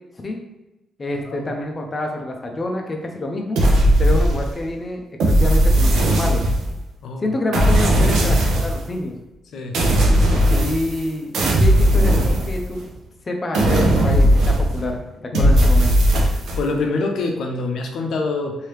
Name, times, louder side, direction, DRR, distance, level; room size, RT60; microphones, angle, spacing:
voice 1, 1.0-3.6 4.0-6.4 7.2-9.1 10.6-12.8 13.3-15.0 15.3-15.9, left 1 dB, 30° left, 2 dB, 0.6 m, -27 dB
sound 1, 3.6-4.7 5.2-6.8 7.5-8.9 9.7-11.1 11.3-12.9 13.5-14.9 15.3-16.6, equal, 85° right, 0.6 m, -17 dB
voice 2, 16.2-18.6, left 3 dB, 70° left, 3 dB, 0.6 m, -25 dB
3.2 x 2.7 x 3.2 m, 1.0 s
cardioid pair, 110°, 0 cm